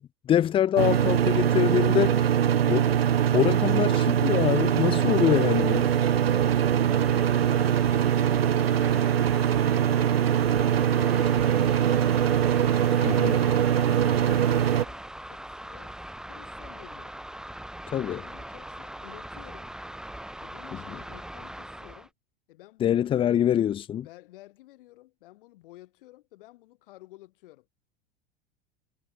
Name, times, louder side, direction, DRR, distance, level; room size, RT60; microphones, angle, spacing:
voice 1, 0.3-2.2 2.7-2.9 3.3-5.9 13.0-13.4 17.9-18.2 22.8-24.0, left 10 dB, 20° left, 0.4 m, -24 dB
sound 1, 0.8-14.9, right 9 dB, 80° right, 0.8 m, -22 dB
sound 2, 5.1-22.1, right 1 dB, ahead, 1.3 m, -42 dB
voice 2, 6.0-12.2 13.0-16.0 16.2-17.2 17.9-19.7 20.4-22.1 22.5-23.3 24.0-27.7, left 17 dB, 60° left, 6.4 m, -52 dB
figure-of-eight pair, 80°, 30 cm